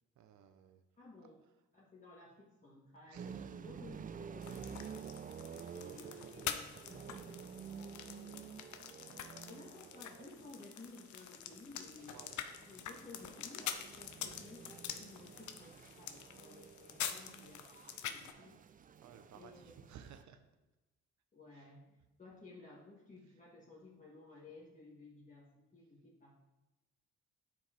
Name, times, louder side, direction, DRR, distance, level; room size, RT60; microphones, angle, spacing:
voice 1, 0.2-0.8 3.1-3.5 12.1-12.4 19.0-20.4 21.5-21.7, right 8 dB, 70° right, 8 dB, 0.8 m, -57 dB
voice 2, 1.0-1.4 1.7-4.8 5.7-9.1 9.4-12.2 12.6-18.6 19.3-19.8 21.3-26.4, left 3 dB, 25° left, -6 dB, 1.6 m, -56 dB
sound 1, 3.2-20.2, right 7 dB, 30° right, 0.4 m, -51 dB
sound 2, 4.4-18.3, left 9 dB, 70° left, 0.8 m, -46 dB
9.5 x 4.7 x 4.4 m, 1.1 s
cardioid pair, 90°, 30 cm